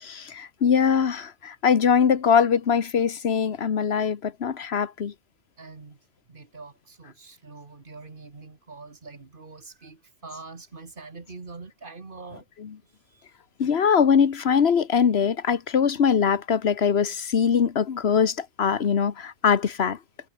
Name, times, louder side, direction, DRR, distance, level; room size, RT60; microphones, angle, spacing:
voice 1, 0.0-5.1 12.6-12.7 13.6-20.0, left 7 dB, 85° left, 1.4 m, -22 dB
voice 2, 5.6-6.0 6.3-12.5 13.1-13.2, right 4 dB, 55° right, 2.0 m, -44 dB
omnidirectional pair, 1.0 m